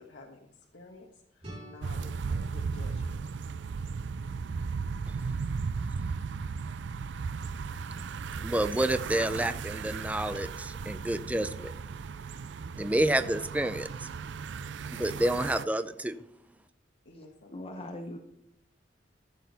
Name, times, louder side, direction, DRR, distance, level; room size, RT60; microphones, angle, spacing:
voice 1, 0.0-3.2 17.0-17.9, left 2 dB, 70° left, -1 dB, 1.4 m, -52 dB
sound 1, 1.4-4.3, right 1 dB, 35° right, 3.9 m, -50 dB
sound 2, 1.8-15.6, right 5 dB, 75° right, 0.4 m, -36 dB
voice 2, 8.4-11.7 12.8-14.1 14.9-16.2, right 1 dB, 10° right, 11 dB, 0.4 m, -29 dB
voice 3, 17.1-18.2, left 1 dB, 30° left, 3 dB, 0.9 m, -41 dB
14.5 x 6.3 x 4.1 m, 0.82 s
head